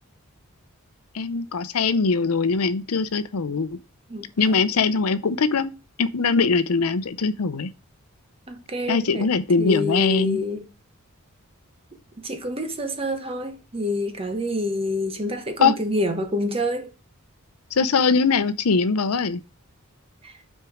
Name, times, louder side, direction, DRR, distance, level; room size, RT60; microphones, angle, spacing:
voice 1, 1.1-3.8 4.4-5.7 6.0-7.7 8.9-10.4 15.6-15.7 17.7-19.4, left 4 dB, 80° left, 0.6 m, -21 dB
voice 2, 8.5-9.3 9.6-10.7 12.2-16.9 20.2-20.3, left 1 dB, 25° right, 1.1 m, -27 dB
6.1 x 4.5 x 4.9 m
head